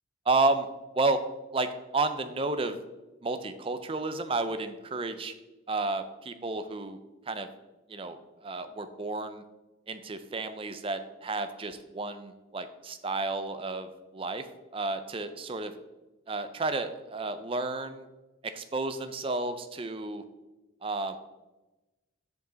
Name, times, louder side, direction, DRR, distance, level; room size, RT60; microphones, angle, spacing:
voice 1, 0.3-0.7 0.9-1.2 1.5-2.8 3.2-5.3 5.7-7.0 7.3-7.5 7.9-9.4 9.9-15.7 16.3-18.1 18.5-20.2 20.8-21.2, right 3 dB, 25° right, 10 dB, 0.4 m, -31 dB
7.3 x 5.2 x 3.9 m, 1.1 s
head